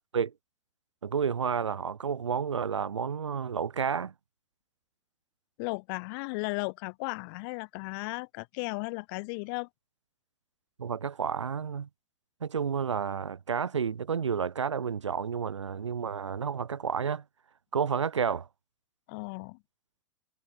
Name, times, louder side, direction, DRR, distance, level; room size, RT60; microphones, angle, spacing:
voice 1, 1.0-4.1 10.8-11.9 12.4-17.2 17.7-18.5, right 6 dB, 85° right, 1.5 m, -30 dB
voice 2, 5.6-9.7 19.1-19.6, left 31 dB, 50° left, 2.8 m, -35 dB
hypercardioid pair, 100°, 15 cm